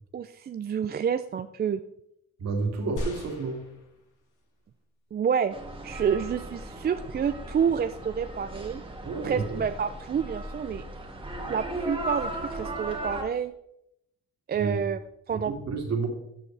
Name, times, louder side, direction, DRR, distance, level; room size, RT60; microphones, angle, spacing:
voice 1, 0.1-1.8 5.1-5.6 5.8-8.8 9.2-10.8 11.5-13.5 14.5-15.0 15.3-15.5, right 7 dB, 35° right, 10 dB, 0.4 m, -28 dB
voice 2, 2.4-3.7 9.0-9.5 14.6-14.8 15.3-16.1, right 4 dB, 60° right, 1 dB, 2.7 m, -30 dB
sound 1, 3.0-4.5 5.2-5.3, left 1 dB, 85° left, 1.8 m, -38 dB
sound 2, 5.5-13.2, right 1 dB, 15° right, 1.8 m, -37 dB
13.0 x 7.0 x 3.4 m, 0.79 s
cardioid pair, 90°, 30 cm